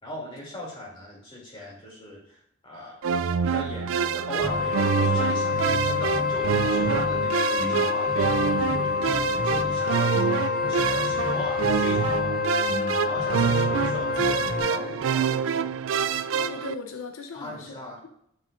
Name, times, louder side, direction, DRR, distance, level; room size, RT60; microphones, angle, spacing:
voice 1, 0.0-3.0 3.4-12.4 13.0-15.3 17.3-18.0, left 1 dB, 25° left, -3 dB, 2.6 m, -39 dB
sound 1, 3.0-16.7, right 7 dB, 70° right, 0.3 m, -26 dB
Wind instrument woodwind instrument, 4.4-15.0, left 6 dB, 45° left, 0.4 m, -27 dB
sound 2, 4.4-4.7 5.0-7.2 7.6-9.8 10.1-12.3 12.7-14.6, equal, 40° right, 2.7 m, -35 dB
voice 2, 16.3-17.8, left 4 dB, 80° left, 5 dB, 0.6 m, -37 dB
9.2 x 7.4 x 2.5 m, 0.71 s
head